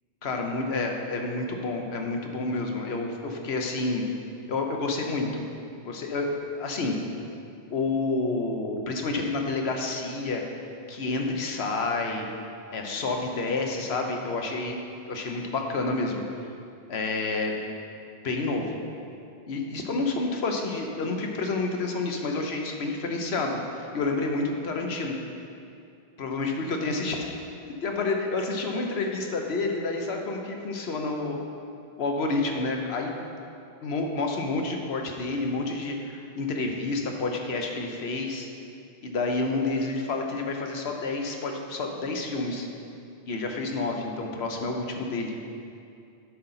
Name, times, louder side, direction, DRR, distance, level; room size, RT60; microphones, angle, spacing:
voice 1, 0.2-4.0 4.5-5.4 5.8-7.0 7.7-10.4 10.9-12.3 12.7-14.8 15.1-16.2 16.9-17.8 18.2-18.8 19.5-25.1 26.2-27.3 27.8-31.4 32.0-33.1 33.8-38.5 39.0-42.7 43.3-45.3, left 3 dB, 90° left, 2 dB, 1.1 m, -29 dB
10.0 x 3.9 x 5.6 m, 2.6 s
omnidirectional pair, 1.0 m